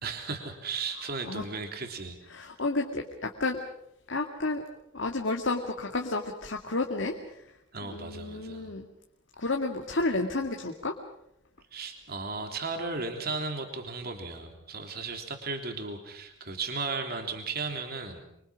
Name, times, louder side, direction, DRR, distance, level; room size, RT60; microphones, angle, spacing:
voice 1, 0.0-2.2 7.7-8.7 11.7-18.2, right 4 dB, 50° right, 4 dB, 3.4 m, -35 dB
voice 2, 2.3-3.6 4.1-4.6 4.9-7.4 7.8-8.9 9.4-10.9, left 2 dB, 65° left, 2 dB, 2.2 m, -31 dB
26.0 x 25.0 x 6.3 m, 0.75 s
head